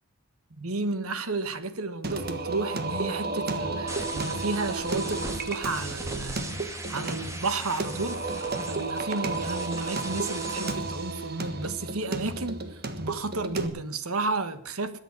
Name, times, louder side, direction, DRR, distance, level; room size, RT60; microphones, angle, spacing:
voice 1, 0.6-15.0, right 3 dB, 75° right, 1.4 m, -32 dB
Singing, 2.0-13.7, right 3 dB, 45° right, 1.5 m, -33 dB
sound 1, 3.9-10.7, right 2 dB, 15° right, 1.8 m, -39 dB
21.0 x 7.4 x 6.9 m
head